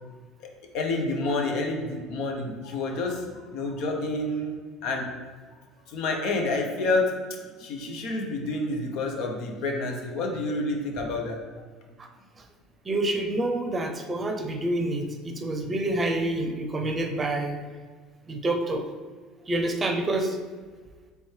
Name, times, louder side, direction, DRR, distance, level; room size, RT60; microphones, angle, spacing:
voice 1, 0.7-3.2 3.5-4.5 4.8-5.1 5.9-7.1 7.6-11.4, left 2 dB, 70° left, 2 dB, 0.7 m, -28 dB
voice 2, 12.8-17.6 18.3-18.8 19.5-20.4, right 1 dB, 25° right, 5 dB, 0.6 m, -27 dB
3.4 x 3.1 x 4.5 m, 1.5 s
supercardioid pair, 100°, 0 cm